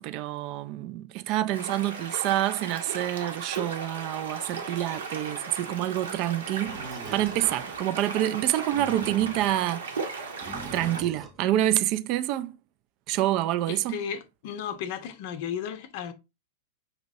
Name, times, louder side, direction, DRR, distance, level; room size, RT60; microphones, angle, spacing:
voice 1, 0.0-6.8 7.1-9.9 10.7-12.6 13.1-14.0, right 13 dB, 40° right, 0.3 m, -27 dB
sound 1, 1.5-11.0, right 4 dB, 70° right, 0.9 m, -36 dB
Animal, 6.6-7.8 8.5-9.6 10.4-11.4, right 3 dB, 20° right, 0.8 m, -42 dB
voice 2, 13.7-16.1, left 8 dB, 50° left, 0.5 m, -34 dB
5.3 x 2.9 x 2.6 m
figure-of-eight pair, 95°, 0 cm